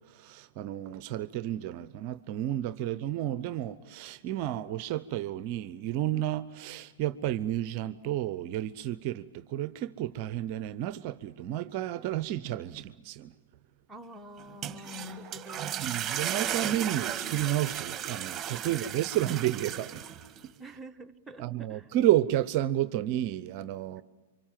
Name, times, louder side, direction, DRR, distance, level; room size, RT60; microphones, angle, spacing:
voice 1, 0.1-13.3 15.8-20.0 21.4-24.0, right 13 dB, 45° right, 0.8 m, -31 dB
voice 2, 2.8-3.3 13.9-15.8 18.6-19.1 20.6-21.9 24.0-24.1, left 1 dB, 10° right, 1.3 m, -47 dB
sound 1, 14.4-20.4, right 10 dB, 25° right, 1.7 m, -35 dB
29.0 x 25.0 x 7.5 m
hypercardioid pair, 115°, 0 cm